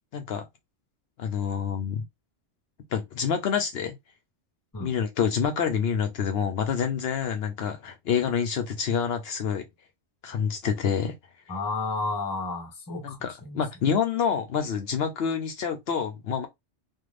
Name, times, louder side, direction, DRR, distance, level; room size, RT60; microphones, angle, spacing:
voice 1, 0.1-0.4 1.2-2.0 2.9-4.0 4.8-9.6 10.2-11.2 13.0-16.5, left 7 dB, 65° left, 0.7 m, -27 dB
voice 2, 11.5-13.6, left 3 dB, 25° left, 0.6 m, -32 dB
2.5 x 2.4 x 3.1 m
omnidirectional pair, 1.2 m